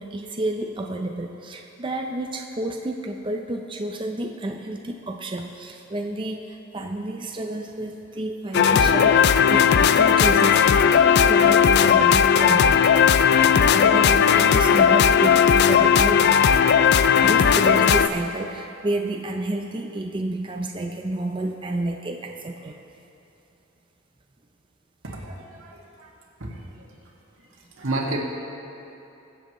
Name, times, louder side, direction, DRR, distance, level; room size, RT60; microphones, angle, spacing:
voice 1, 0.0-12.9 13.2-16.4 17.2-22.9, right 1 dB, 25° right, 3 dB, 0.5 m, -30 dB
sound 1, 8.5-18.1, left 7 dB, 55° left, 0.4 m, -17 dB
voice 2, 25.0-26.1 26.4-26.9 27.7-28.2, right 2 dB, 90° right, -2 dB, 2.0 m, -31 dB
22.5 x 7.7 x 3.1 m, 2.9 s
head